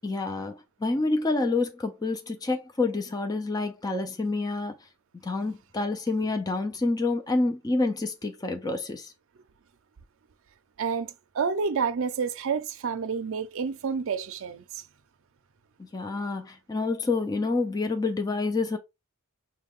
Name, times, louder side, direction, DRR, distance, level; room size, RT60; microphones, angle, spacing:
voice 1, 0.0-4.8 5.2-9.1 15.9-18.8, left 3 dB, 15° left, 0.4 m, -28 dB
voice 2, 10.8-14.8, right 5 dB, 60° right, 0.5 m, -29 dB
5.6 x 2.2 x 3.5 m
head